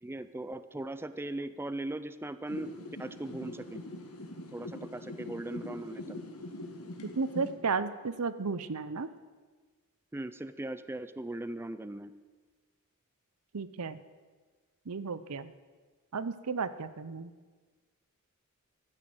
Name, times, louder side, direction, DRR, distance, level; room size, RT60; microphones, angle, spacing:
voice 1, 0.0-3.8 4.5-6.2 10.1-12.1, right 1 dB, 10° right, 13 dB, 0.4 m, -39 dB
sound 1, 2.5-7.5, left 1 dB, 85° left, 2.0 m, -43 dB
voice 2, 7.1-9.1 13.5-14.0 14.9-15.5 16.1-17.3, right 4 dB, 80° right, 14 dB, 0.7 m, -33 dB
13.5 x 9.7 x 7.8 m, 1.4 s
head